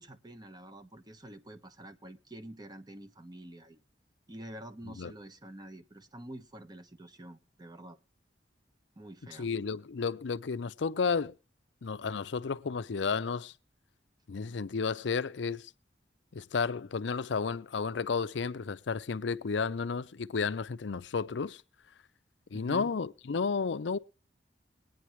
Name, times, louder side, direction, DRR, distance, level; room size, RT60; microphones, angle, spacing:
voice 1, 0.0-3.8 4.3-8.0 9.0-9.5 22.5-22.9, right 1 dB, 25° right, 1.2 m, -47 dB
voice 2, 9.4-11.4 11.8-13.5 14.3-15.7 16.3-21.6 22.5-24.0, left 5 dB, 75° left, 0.5 m, -32 dB
21.5 x 9.4 x 3.1 m
head